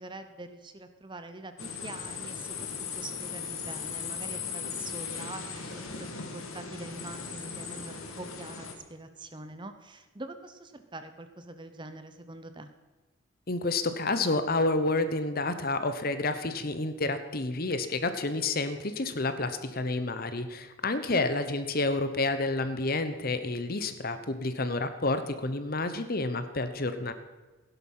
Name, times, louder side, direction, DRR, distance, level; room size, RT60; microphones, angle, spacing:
voice 1, 0.0-12.7 21.0-21.3, right 2 dB, 20° right, 9 dB, 0.9 m, -44 dB
sound 1, 1.6-8.7, left 6 dB, 85° left, 2.1 m, -38 dB
voice 2, 13.5-27.1, left 2 dB, 45° left, 10 dB, 1.0 m, -29 dB
16.5 x 11.0 x 5.6 m, 1.2 s
head